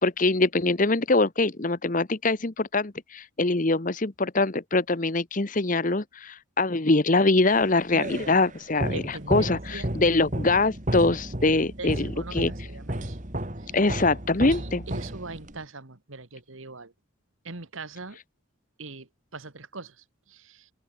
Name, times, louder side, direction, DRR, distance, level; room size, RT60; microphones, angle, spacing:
voice 1, 0.0-12.5 13.7-14.8, left 2 dB, 40° left, 1.1 m, -23 dB
sound 1, 7.5-15.6, right 1 dB, 35° right, 2.8 m, -33 dB
voice 2, 8.9-9.9 11.4-13.2 13.6-13.8 14.5-16.9 17.4-18.2 18.8-20.7, right 3 dB, 75° right, 1.9 m, -41 dB
head